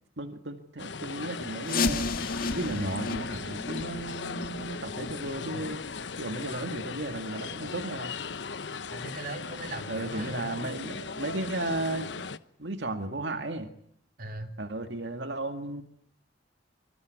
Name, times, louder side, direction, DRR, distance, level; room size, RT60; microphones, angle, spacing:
voice 1, 0.2-2.1 2.5-5.8 6.2-8.1 9.9-12.1 12.6-13.7 14.6-15.8, right 2 dB, 75° right, 7 dB, 2.1 m, -34 dB
sound 1, 0.8-12.4, left 5 dB, 80° left, 1.1 m, -38 dB
sound 2, 1.6-7.2 7.6-7.7 8.2-8.3 8.9-9.0 9.6-9.7, left 3 dB, 50° left, 2.3 m, -34 dB
voice 2, 8.9-10.6 14.2-14.5, right 2 dB, 55° right, 5 dB, 3.7 m, -39 dB
25.5 x 24.0 x 9.4 m, 0.68 s
head